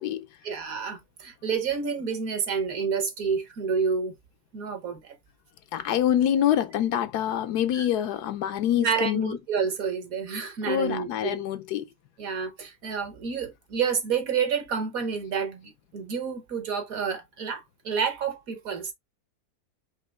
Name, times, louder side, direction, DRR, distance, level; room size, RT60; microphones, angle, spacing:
voice 1, 0.4-4.1 4.5-5.1 7.7-7.9 8.7-11.4 12.2-18.9, right 6 dB, 55° right, 1.4 m, -29 dB
voice 2, 5.7-9.4 10.7-11.9, left 10 dB, 75° left, 1.1 m, -25 dB
5.1 x 2.6 x 3.4 m
omnidirectional pair, 1.8 m